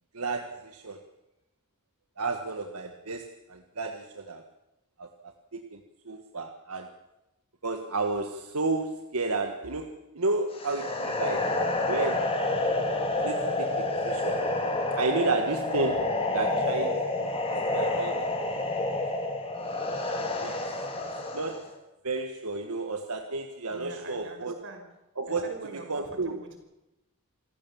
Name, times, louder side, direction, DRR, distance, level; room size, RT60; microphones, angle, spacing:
voice 1, 0.1-1.0 2.2-4.4 5.0-5.8 6.0-6.9 7.6-11.6 11.9-12.3 13.2-14.5 15.0-17.3 17.7-18.2 20.4-20.5 21.3-21.7 22.0-24.6 25.2-25.5 25.9-26.3, right 3 dB, 85° right, 5 dB, 1.6 m, -32 dB
sound 1, 10.5-21.7, left 2 dB, 25° left, 3.5 m, -29 dB
voice 2, 23.7-24.8 25.3-26.6, right 2 dB, 60° right, 5 dB, 5.4 m, -43 dB
27.0 x 15.5 x 7.2 m, 0.94 s
head